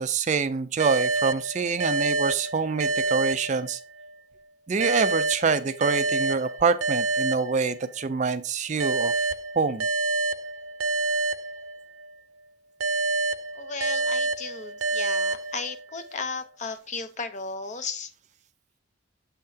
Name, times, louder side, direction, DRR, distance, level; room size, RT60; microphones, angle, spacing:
voice 1, 0.0-3.8 4.7-9.1 9.6-9.8, right 5 dB, 35° right, 0.4 m, -26 dB
sound 1, 0.8-4.1 4.8-8.1 8.8-12.1 12.8-16.1, right 3 dB, 90° right, 0.5 m, -28 dB
voice 2, 13.5-18.1, left 4 dB, 35° left, 0.7 m, -35 dB
7.3 x 5.7 x 2.8 m
head